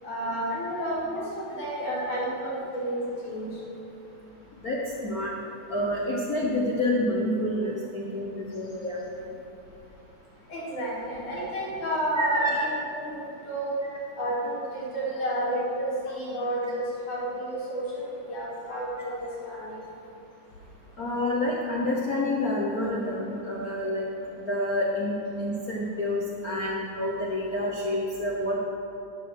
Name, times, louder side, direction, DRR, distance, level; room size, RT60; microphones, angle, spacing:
voice 1, 0.0-3.6 10.5-13.8 14.2-19.8, right 1 dB, 90° left, -8 dB, 4.7 m, -31 dB
voice 2, 4.6-5.3 5.7-9.0 12.1-12.6 21.0-24.1 24.5-28.6, left 1 dB, 65° left, -3 dB, 0.8 m, -28 dB
12.0 x 7.2 x 6.5 m, 2.9 s
omnidirectional pair, 3.4 m